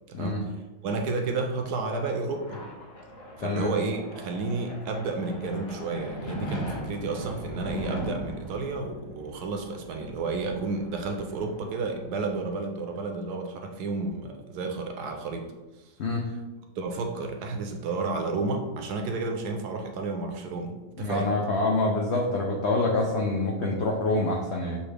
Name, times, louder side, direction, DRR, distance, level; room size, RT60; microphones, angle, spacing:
voice 1, 0.1-0.5 0.8-2.6 3.4-15.5 16.8-21.3, right 3 dB, 75° right, 3 dB, 1.1 m, -31 dB
sound 1, 1.3-12.6, equal, 45° left, 0.9 m, -40 dB
voice 2, 3.4-3.7 16.0-16.3 21.0-24.8, left 2 dB, 75° left, -1 dB, 0.6 m, -26 dB
6.8 x 2.4 x 3.3 m, 1.1 s
omnidirectional pair, 1.8 m